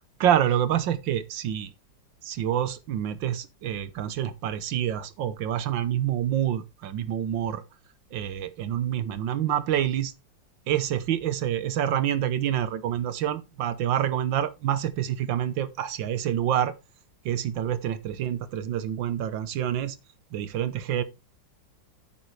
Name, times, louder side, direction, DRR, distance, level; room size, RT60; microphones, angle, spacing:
voice 1, 0.2-1.7 2.2-7.6 8.1-10.1 10.7-16.7 17.3-20.0 20.3-21.0, right 10 dB, 90° right, 1.7 m, -27 dB
9.5 x 8.6 x 3.3 m
omnidirectional pair, 2.0 m